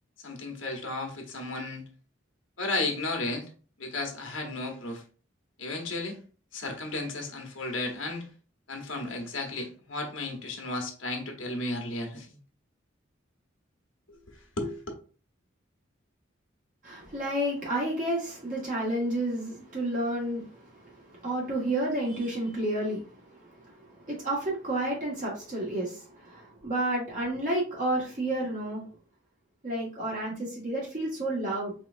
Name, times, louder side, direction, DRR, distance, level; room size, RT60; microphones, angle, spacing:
voice 1, 0.2-1.8 2.6-3.5 3.8-5.0 5.6-6.2 6.5-8.2 8.7-12.4 14.1-14.8, left 2 dB, 70° left, 2 dB, 1.2 m, -34 dB
voice 2, 16.8-28.8 29.6-31.7, right 1 dB, 40° right, -4 dB, 1.6 m, -31 dB
4.4 x 3.8 x 2.6 m, 0.39 s
head